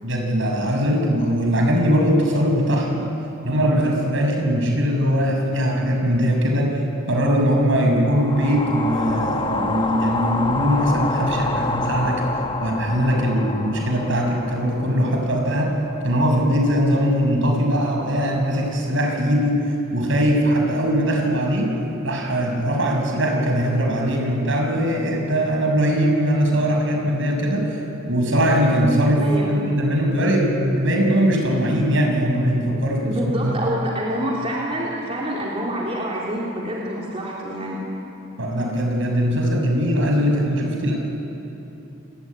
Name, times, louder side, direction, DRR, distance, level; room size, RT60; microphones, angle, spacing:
voice 1, 0.0-3.1 3.4-6.8 7.1-12.2 12.6-15.8 16.0-19.6 19.9-21.7 22.0-27.8 28.0-33.5 38.4-41.0, equal, 65° right, 1 dB, 6.7 m, -20 dB
sound 1, 8.1-16.3, left 3 dB, 25° left, 1.1 m, -28 dB
voice 2, 29.2-29.6 33.0-37.8, equal, 30° right, -4 dB, 3.3 m, -27 dB
29.0 x 20.5 x 9.9 m, 2.9 s
head